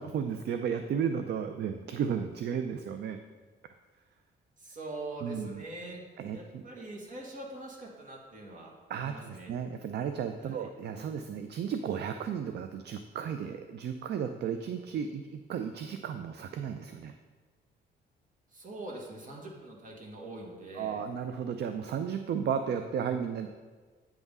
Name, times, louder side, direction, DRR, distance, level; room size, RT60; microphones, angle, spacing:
voice 1, 0.0-3.2 5.2-5.6 6.2-6.6 8.9-17.1 20.7-23.5, right 7 dB, 55° right, 8 dB, 0.5 m, -34 dB
voice 2, 4.6-6.0 6.3-9.5 10.4-10.7 18.5-21.0, right 2 dB, 40° right, -1 dB, 1.8 m, -43 dB
9.0 x 3.6 x 5.4 m, 1.4 s
cardioid pair, 90°, 20 cm